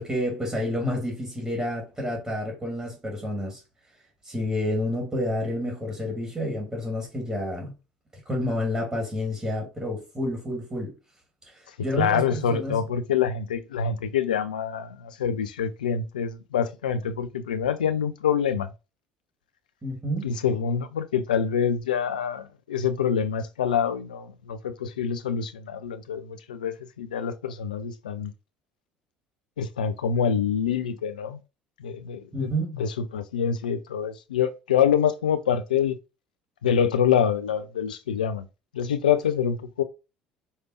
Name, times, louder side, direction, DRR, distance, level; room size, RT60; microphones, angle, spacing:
voice 1, 0.0-3.6 4.2-7.7 8.3-10.9 11.5-12.8 19.8-20.3 32.3-32.8, left 1 dB, 20° right, 2.4 m, -29 dB
voice 2, 11.9-18.7 20.2-28.3 29.6-31.4 31.8-36.0 36.6-38.5 38.7-39.8, left 7 dB, 80° left, 0.5 m, -26 dB
5.6 x 3.3 x 2.7 m
figure-of-eight pair, 60°, 4 cm